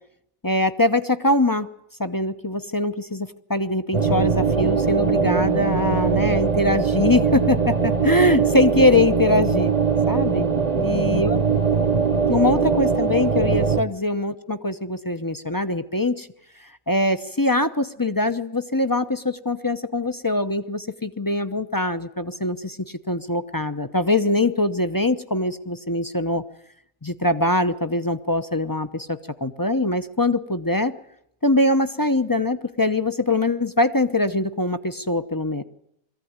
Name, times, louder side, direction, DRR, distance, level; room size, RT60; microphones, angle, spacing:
voice 1, 0.4-1.7 2.0-9.7 10.1-10.5 10.8-11.4 11.8-11.9 12.3-16.3 16.6-26.4 27.0-30.9 31.4-35.6, left 2 dB, 20° left, 10 dB, 0.6 m, -23 dB
sound 1, 3.9-13.8, right 5 dB, 30° right, 1.0 m, -21 dB
22.5 x 15.0 x 9.5 m, 0.80 s
omnidirectional pair, 1.5 m